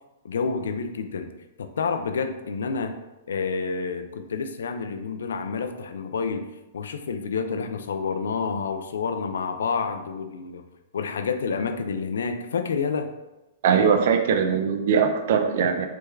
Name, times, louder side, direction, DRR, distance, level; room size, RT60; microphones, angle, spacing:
voice 1, 0.2-1.3 1.6-3.0 3.3-10.6 10.9-13.1, left 5 dB, 90° left, 8 dB, 0.3 m, -29 dB
voice 2, 13.6-15.9, right 6 dB, 60° right, 6 dB, 0.4 m, -21 dB
3.4 x 2.2 x 3.1 m, 1.0 s
hypercardioid pair, 150°, 0 cm